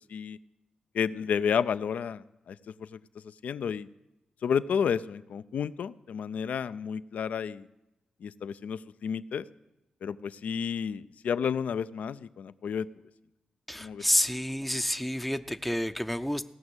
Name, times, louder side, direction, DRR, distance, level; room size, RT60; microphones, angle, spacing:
voice 1, 0.9-3.0 3.4-3.9 4.4-7.7 8.2-9.5 10.0-12.9 13.8-14.0, left 7 dB, 75° left, 15 dB, 0.4 m, -31 dB
voice 2, 13.7-16.4, left 1 dB, 5° left, 9 dB, 0.5 m, -29 dB
16.0 x 6.0 x 7.9 m, 0.98 s
supercardioid pair, 45°, 3 cm